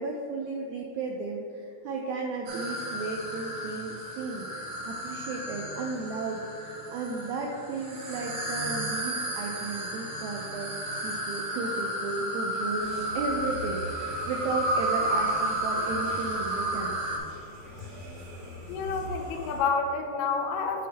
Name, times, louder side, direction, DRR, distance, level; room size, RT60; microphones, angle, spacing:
voice 1, 0.0-17.0, right 3 dB, 85° right, 1 dB, 1.7 m, -34 dB
sound 1, 2.5-17.2, right 1 dB, 70° right, 2.0 m, -32 dB
sound 2, 12.8-19.6, equal, 50° right, 1.4 m, -42 dB
voice 2, 18.7-20.9, left 5 dB, 85° left, 4 dB, 2.3 m, -29 dB
8.5 x 4.6 x 3.3 m, 2.7 s
omnidirectional pair, 3.9 m